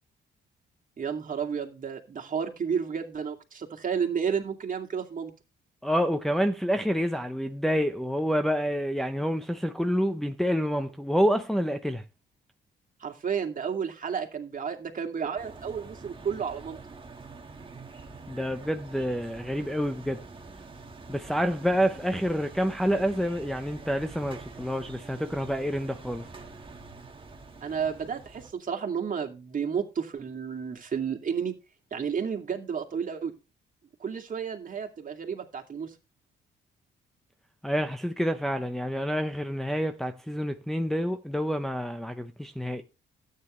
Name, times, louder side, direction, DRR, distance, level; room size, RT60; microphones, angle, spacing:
voice 1, 1.0-5.3 13.0-16.8 27.6-31.5 31.9-33.3 34.0-35.9, right 7 dB, 40° right, 2.4 m, -32 dB
voice 2, 5.8-12.0 18.3-20.2 21.1-26.3 37.6-42.8, equal, ahead, 0.8 m, -28 dB
sound 1, 15.4-28.5, right 3 dB, 25° right, 1.7 m, -46 dB
13.0 x 9.4 x 3.2 m
cardioid pair, 90°, 20 cm